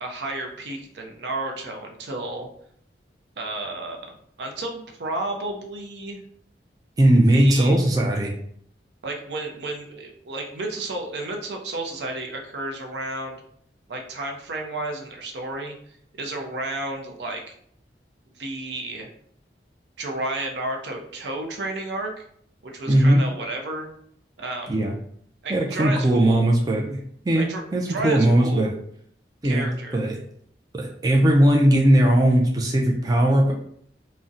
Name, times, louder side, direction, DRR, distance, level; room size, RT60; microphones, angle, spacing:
voice 1, 0.0-2.5 3.4-4.1 4.4-6.2 7.3-7.8 9.0-13.4 13.9-15.8 16.2-17.6 18.4-19.1 20.0-22.1 22.6-23.9 24.4-24.8 25.4-26.4 27.4-28.7 29.4-30.0, right 2 dB, 80° right, 2 dB, 0.6 m, -32 dB
voice 2, 7.0-8.3 22.9-23.2 24.7-24.9 25.5-27.0 27.3-27.5 27.7-28.7 29.4-29.7 29.9-30.2 30.7-33.5, right 1 dB, 20° right, -1 dB, 0.3 m, -18 dB
2.6 x 2.1 x 3.6 m, 0.65 s
head